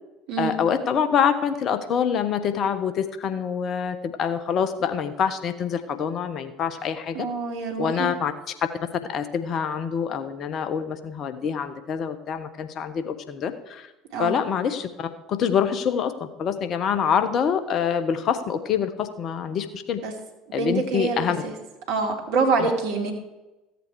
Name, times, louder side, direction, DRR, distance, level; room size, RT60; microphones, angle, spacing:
voice 1, 0.4-7.3 7.8-8.3 9.0-13.9 14.2-20.0 20.5-21.4, left 7 dB, 45° left, 10 dB, 1.1 m, -26 dB
voice 2, 7.1-8.1 14.1-14.4 20.0-20.1 20.5-21.5 21.9-23.1, right 4 dB, 60° right, 3 dB, 2.3 m, -26 dB
15.0 x 8.2 x 4.7 m, 1.0 s
figure-of-eight pair, 65°, 0 cm